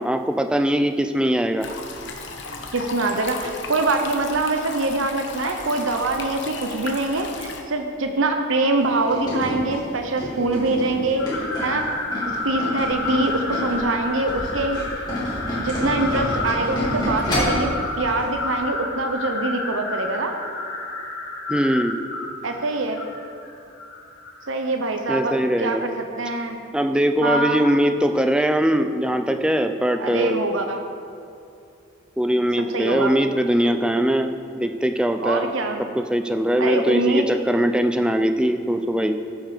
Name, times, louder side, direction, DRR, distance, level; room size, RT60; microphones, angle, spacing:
voice 1, 0.0-1.7 21.5-22.0 25.1-25.9 26.7-30.4 32.2-35.5 36.0-39.2, equal, 5° right, 7 dB, 0.4 m, -21 dB
sound 1, 1.6-7.6, left 4 dB, 60° left, 1.1 m, -35 dB
voice 2, 2.7-11.9 12.4-14.8 15.6-20.4 22.4-23.0 24.5-26.6 27.2-27.6 30.0-30.8 32.7-33.1 35.2-35.8 36.6-37.3, right 2 dB, 80° right, 5 dB, 0.8 m, -24 dB
Tools, 8.8-13.8 14.1-17.7 18.1-18.3 18.6-18.7, left 1 dB, 20° left, 3.3 m, -28 dB
sound 2, 11.2-24.5, left 2 dB, 90° left, 1.9 m, -30 dB
14.5 x 7.3 x 5.0 m, 2.5 s
head